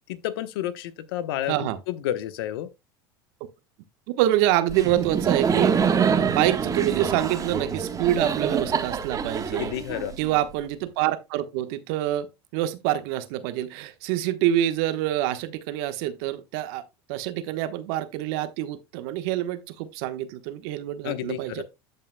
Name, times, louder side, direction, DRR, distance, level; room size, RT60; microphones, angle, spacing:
voice 1, 0.1-2.7 9.5-10.2 21.0-21.6, left 12 dB, 75° left, 1.0 m, -31 dB
voice 2, 1.5-1.8 4.1-9.7 10.2-12.3 12.5-16.8 17.1-21.6, right 13 dB, 70° right, 1.2 m, -26 dB
Laughter, 4.7-10.5, right 6 dB, 25° right, 1.3 m, -25 dB
13.5 x 5.5 x 2.2 m
hypercardioid pair, 95°, 13 cm